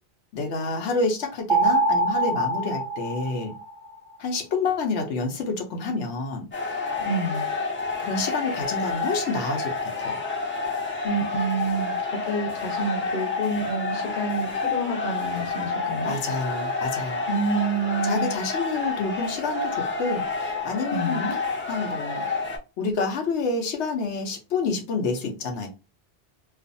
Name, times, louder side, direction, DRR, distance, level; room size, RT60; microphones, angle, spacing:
voice 1, 0.3-3.5 4.2-6.5 8.0-10.2 16.0-17.2 18.1-21.2 21.7-22.3 22.8-25.7, left 3 dB, 85° left, 0.9 m, -28 dB
sound 1, 1.5-3.9, right 2 dB, 25° right, 0.6 m, -24 dB
sound 2, 6.5-22.6, left 4 dB, 20° left, 0.4 m, -29 dB
voice 2, 7.0-7.5 11.0-16.1 17.3-18.3 20.9-21.3, right 3 dB, 55° left, 0.8 m, -28 dB
2.4 x 2.4 x 2.5 m
omnidirectional pair, 1.1 m